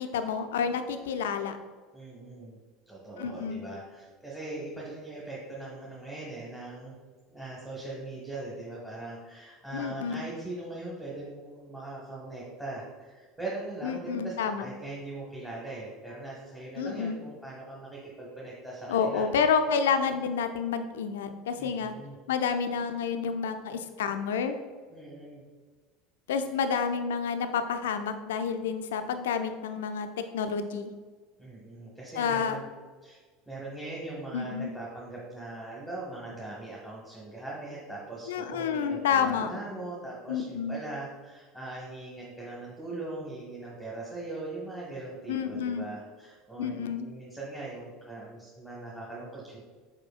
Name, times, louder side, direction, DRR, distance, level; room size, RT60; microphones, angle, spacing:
voice 1, 0.0-1.6 3.2-3.6 9.7-10.2 13.8-14.6 16.8-17.2 18.9-21.9 22.3-24.6 26.3-30.1 30.3-30.9 32.2-32.6 34.3-34.7 38.3-39.5 40.3-40.8 45.3-45.8 46.6-47.1, left 6 dB, 75° left, 8 dB, 0.4 m, -29 dB
voice 2, 1.9-2.6 2.9-6.9 7.3-19.4 21.6-22.2 24.9-25.4 31.4-32.7 33.0-33.2 33.5-49.6, right 2 dB, 5° right, -5 dB, 1.1 m, -40 dB
4.9 x 4.3 x 2.4 m, 1.4 s
hypercardioid pair, 75°, 0 cm